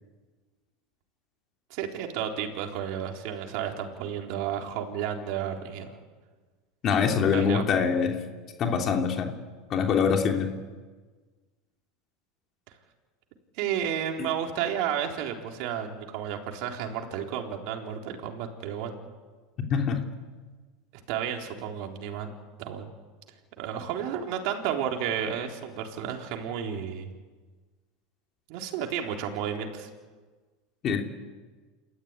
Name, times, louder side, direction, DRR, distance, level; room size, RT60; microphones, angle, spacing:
voice 1, 1.7-6.0 7.3-7.6 13.6-19.0 21.1-22.3 22.6-22.9 23.6-27.1 28.5-29.9, right 9 dB, 60° right, 2 dB, 3.9 m, -32 dB
voice 2, 6.8-8.2 8.6-9.3 9.7-10.5 14.2-14.3 19.7-20.0 30.8-31.0, left 6 dB, 40° left, 2 dB, 3.1 m, -24 dB
28.0 x 14.5 x 9.9 m, 1.4 s
supercardioid pair, 125°, 0 cm